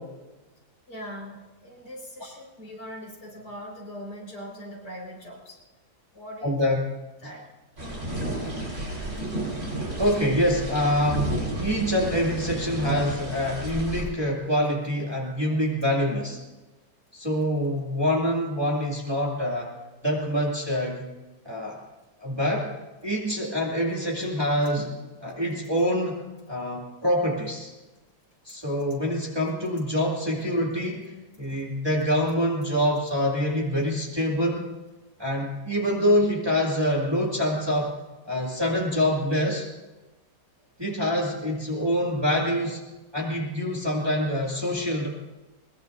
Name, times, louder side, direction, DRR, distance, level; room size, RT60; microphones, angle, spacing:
voice 1, 0.9-5.6 6.1-6.5 7.2-7.4, equal, 70° left, -2 dB, 5.5 m, -41 dB
voice 2, 6.4-6.8 10.0-16.4 17.1-19.7 20.0-21.1 21.4-21.8 22.2-22.7 23.0-26.2 26.5-27.7 28.5-34.6 35.2-37.9 38.2-39.7 40.8-42.8 43.1-45.1, equal, 15° right, -3 dB, 2.4 m, -25 dB
sound 1, 7.8-14.0, right 1 dB, 40° right, 5.1 m, -32 dB
22.0 x 21.0 x 2.6 m, 1.1 s
omnidirectional pair, 1.8 m